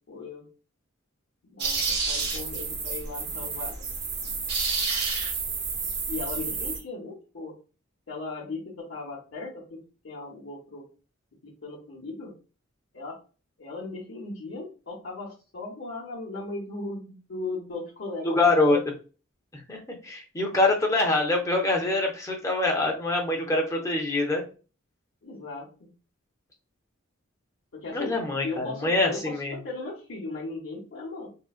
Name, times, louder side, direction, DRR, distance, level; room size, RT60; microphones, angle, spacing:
voice 1, 0.1-0.4 1.4-3.8 6.1-7.5 8.1-9.8 10.0-10.8 11.4-12.3 12.9-13.2 13.6-18.5 25.2-25.7 27.7-28.1 28.4-31.3, left 3 dB, 65° left, -6 dB, 0.8 m, -37 dB
sound 1, 1.6-6.8, right 4 dB, 55° right, 0.8 m, -30 dB
voice 2, 18.2-18.8 19.7-24.4 27.9-29.6, left 2 dB, 15° left, 0 dB, 0.6 m, -24 dB
3.7 x 2.1 x 2.3 m, 0.36 s
head